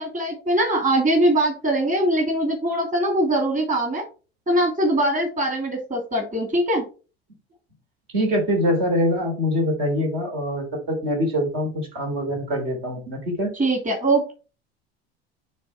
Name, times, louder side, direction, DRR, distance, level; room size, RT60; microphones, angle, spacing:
voice 1, 0.0-4.0 4.5-6.9 13.5-14.3, right 1 dB, 25° right, 2 dB, 2.9 m, -22 dB
voice 2, 8.1-13.5, equal, 60° right, 2 dB, 3.4 m, -24 dB
9.3 x 3.6 x 4.3 m, 0.34 s
figure-of-eight pair, 70°, 31 cm